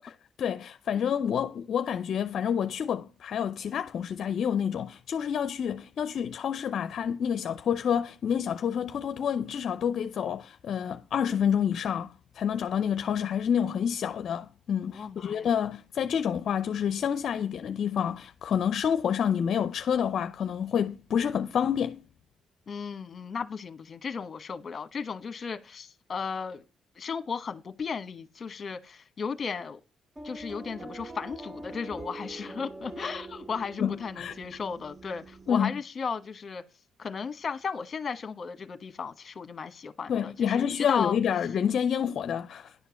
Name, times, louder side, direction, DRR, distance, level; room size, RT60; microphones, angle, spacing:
voice 1, 0.4-22.0 33.8-34.3 35.5-35.7 40.1-42.7, left 8 dB, 60° left, 0.5 m, -28 dB
voice 2, 14.9-15.5 22.7-26.6 26.9-29.8 30.2-36.6 37.0-41.2, left 5 dB, 40° left, 1.3 m, -35 dB
sound 1, 30.2-35.5, right 2 dB, 20° right, 0.8 m, -44 dB
10.5 x 4.6 x 7.0 m
cardioid pair, 90°, 0 cm